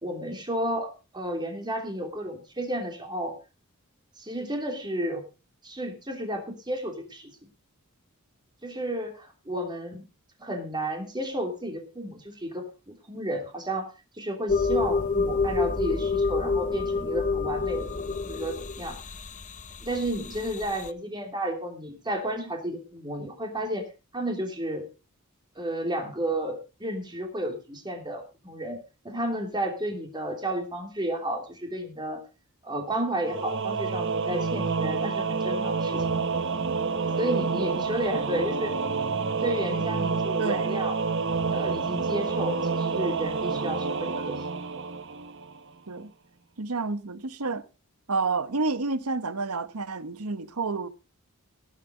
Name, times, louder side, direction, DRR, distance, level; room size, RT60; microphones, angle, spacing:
voice 1, 0.0-3.3 4.2-5.2 5.6-7.3 8.6-10.0 10.4-13.9 14.2-19.0 19.8-23.9 24.1-24.9 25.5-28.8 29.0-32.2 32.6-36.0 37.2-38.7 39.4-41.0 41.5-44.6, right 1 dB, 20° right, 2.9 m, -32 dB
sound 1, 14.5-20.9, left 4 dB, 35° left, 0.8 m, -28 dB
Singing / Musical instrument, 33.2-45.7, right 4 dB, 55° right, 1.3 m, -28 dB
voice 2, 40.4-40.7 45.9-46.1 46.6-47.6 48.1-50.9, right 3 dB, 80° right, 1.1 m, -29 dB
18.0 x 7.6 x 5.1 m
head